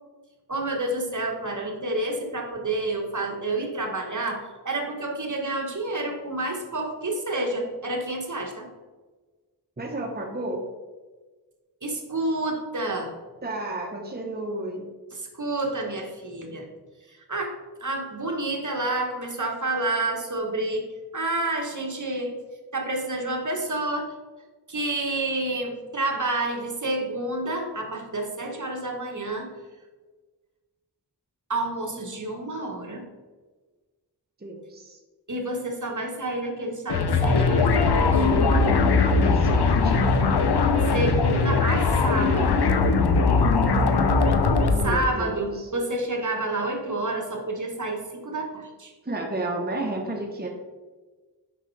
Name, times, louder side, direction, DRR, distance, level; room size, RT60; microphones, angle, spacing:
voice 1, 0.5-8.7 11.8-13.1 15.1-16.7 17.3-17.5 17.8-22.3 22.7-24.1 24.7-29.5 31.5-33.0 35.3-38.3 40.9-42.7 44.8-48.9, right 2 dB, 45° right, 2 dB, 1.2 m, -29 dB
voice 2, 9.8-10.7 13.4-14.9 34.4-35.0 39.1-40.2 44.7-45.7 49.0-50.5, right 2 dB, 25° right, 1 dB, 0.9 m, -32 dB
sound 1, 36.9-45.1, left 4 dB, 75° left, 0.6 m, -20 dB
6.6 x 5.5 x 3.3 m, 1.3 s
wide cardioid pair, 40°, 40 cm